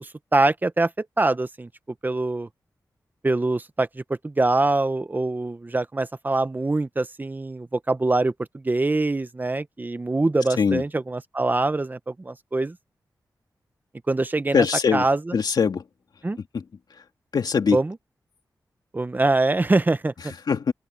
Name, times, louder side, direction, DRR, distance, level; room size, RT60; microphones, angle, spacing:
voice 1, 0.0-1.7 2.0-2.5 3.2-12.8 14.1-14.7 14.9-15.3 16.2-16.4 17.7-18.0 18.9-20.3, right 2 dB, 25° right, 0.9 m, -24 dB
voice 2, 14.5-15.1 15.3-15.8 16.5-16.6 17.3-17.8 20.5-20.7, left 6 dB, 75° left, 2.3 m, -21 dB
open air
wide cardioid pair, 95°, 7 cm